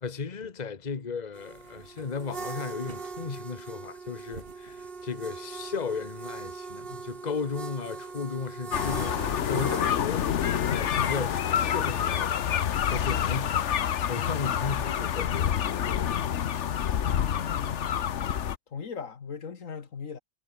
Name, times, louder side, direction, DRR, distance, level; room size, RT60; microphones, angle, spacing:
voice 1, 0.0-10.2 10.7-15.5, left 5 dB, 35° left, 1.4 m, -35 dB
sound 1, 1.3-13.8, right 4 dB, 45° right, 1.9 m, -41 dB
sound 2, 8.7-18.6, left 9 dB, 65° left, 1.2 m, -27 dB
voice 2, 17.0-18.0 18.7-20.2, left 6 dB, 85° left, 2.1 m, -39 dB
omnidirectional pair, 1.3 m